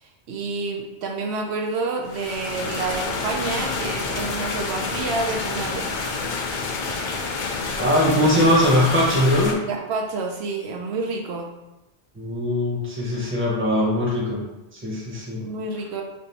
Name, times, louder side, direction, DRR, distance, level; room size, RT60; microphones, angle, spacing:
voice 1, 0.0-5.9 8.1-8.3 9.6-11.5 15.3-16.0, right 3 dB, 75° right, 1 dB, 0.8 m, -29 dB
sound 1, 2.0-9.5, left 4 dB, 55° left, 0.6 m, -28 dB
voice 2, 7.8-9.6 12.2-14.4 14.7-15.4, left 1 dB, 10° right, -4 dB, 0.8 m, -21 dB
3.4 x 2.6 x 4.1 m, 0.96 s
omnidirectional pair, 1.1 m